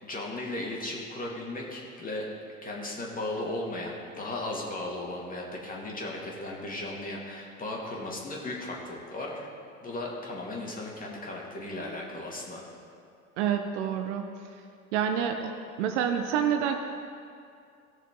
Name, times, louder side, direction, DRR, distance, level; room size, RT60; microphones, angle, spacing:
voice 1, 0.0-2.3 2.6-9.5 9.8-12.6, left 2 dB, 20° left, -3 dB, 2.4 m, -36 dB
voice 2, 13.4-14.3 14.9-15.5 15.8-16.8, right 8 dB, 50° right, 5 dB, 0.8 m, -27 dB
17.5 x 6.4 x 3.8 m, 2.4 s
figure-of-eight pair, 85°, 44 cm